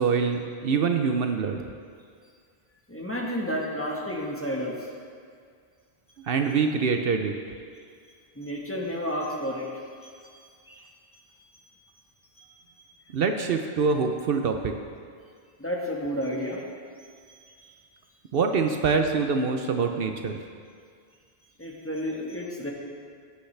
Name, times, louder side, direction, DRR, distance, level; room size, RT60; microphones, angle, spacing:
voice 1, 0.0-1.7 6.2-7.3 13.1-14.7 18.3-20.4, right 5 dB, 65° right, 5 dB, 0.8 m, -25 dB
voice 2, 2.9-4.9 6.1-6.2 8.4-9.7 10.0-10.3 10.7-10.8 11.1-11.2 11.5-11.7 12.4-12.5 15.6-16.6 17.0-17.7 21.6-22.7, equal, 15° left, -3 dB, 1.3 m, -32 dB
16.5 x 7.9 x 3.3 m, 2.1 s
omnidirectional pair, 1.1 m